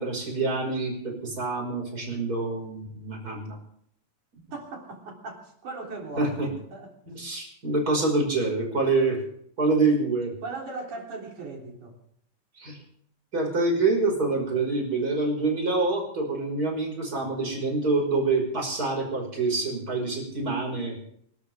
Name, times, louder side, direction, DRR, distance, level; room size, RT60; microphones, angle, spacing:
voice 1, 0.0-3.6 6.2-6.5 7.1-9.2 9.6-10.3 12.6-12.8 13.3-21.0, right 3 dB, 25° right, 0 dB, 5.9 m, -26 dB
voice 2, 4.5-6.9 10.4-12.0, right 3 dB, 60° right, 0 dB, 4.8 m, -38 dB
27.0 x 12.5 x 3.7 m, 0.66 s
omnidirectional pair, 3.9 m